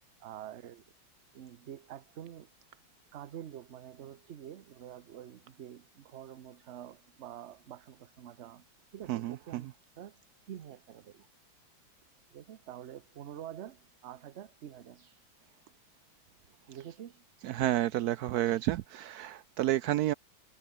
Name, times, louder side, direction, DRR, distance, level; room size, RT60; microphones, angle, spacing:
voice 1, 0.2-0.8 1.3-2.5 3.1-8.7 8.9-9.7 10.0-10.2 10.5-11.3 12.3-15.1 16.7-17.2, right 10 dB, 55° right, 0.8 m, -47 dB
voice 2, 9.1-9.7 17.4-20.1, right 14 dB, 85° right, 0.8 m, -30 dB
omnidirectional pair, 2.2 m